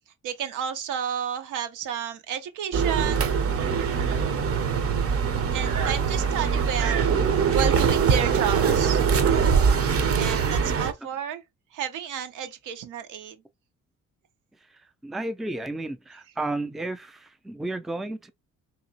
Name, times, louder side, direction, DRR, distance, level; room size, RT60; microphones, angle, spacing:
voice 1, 0.2-3.2 3.5-3.6 5.5-7.1 7.5-9.1 10.2-11.4 11.7-13.4, right 9 dB, 90° right, 0.7 m, -31 dB
sound 1, 2.7-10.9, right 6 dB, 50° right, 0.6 m, -22 dB
voice 2, 15.0-18.3, right 2 dB, ahead, 0.3 m, -32 dB
3.0 x 2.8 x 2.7 m
cardioid pair, 90°, 30 cm